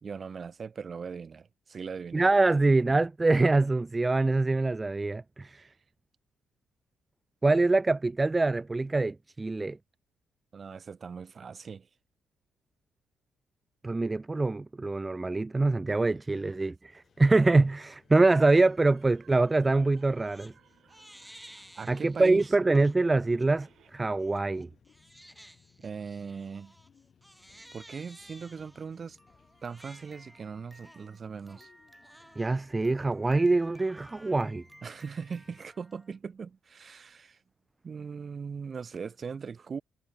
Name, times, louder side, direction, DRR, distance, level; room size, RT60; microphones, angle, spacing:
voice 1, 0.0-2.3 5.4-5.8 10.5-11.9 21.8-22.4 25.8-26.7 27.7-29.2 29.6-31.7 34.8-37.4 37.8-39.8, right 5 dB, 40° right, 0.8 m, -40 dB
voice 2, 2.1-5.6 7.4-9.8 13.8-20.5 21.9-24.7 32.4-34.6, right 3 dB, 20° right, 0.4 m, -24 dB
sound 1, 17.0-35.7, left 7 dB, 50° left, 6.3 m, -64 dB
sound 2, 18.6-23.9, right 10 dB, 65° right, 7.7 m, -64 dB
Crying sobbing, 19.9-20.5 20.9-22.9 23.4-23.7 24.2-36.2, equal, 5° right, 3.0 m, -55 dB
cardioid pair, 90°, 0 cm